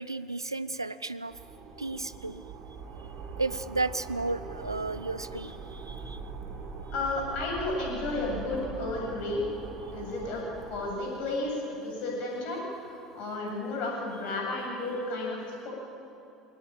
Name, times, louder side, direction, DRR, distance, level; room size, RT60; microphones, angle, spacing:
voice 1, 0.0-1.3 1.8-2.4 3.4-6.2, right 3 dB, 85° right, 14 dB, 0.6 m, -33 dB
sound 1, 1.3-10.9, right 4 dB, 45° right, 4.0 m, -42 dB
voice 2, 6.9-9.4 9.9-11.5 11.8-12.6 13.1-15.4 15.6-15.7, left 2 dB, 55° left, -1 dB, 7.8 m, -32 dB
22.0 x 18.0 x 8.9 m, 2.8 s
figure-of-eight pair, 65°, 2 cm